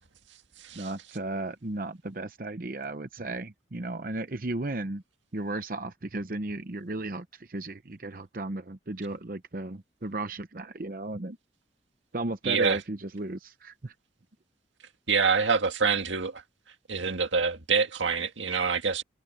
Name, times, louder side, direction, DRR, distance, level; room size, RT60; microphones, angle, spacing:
voice 1, 0.7-5.0 5.3-11.4 12.1-13.9, right 2 dB, 50° right, 0.8 m, -35 dB
voice 2, 12.4-12.8 15.1-16.4 16.9-19.0, right 5 dB, 85° right, 2.0 m, -26 dB
head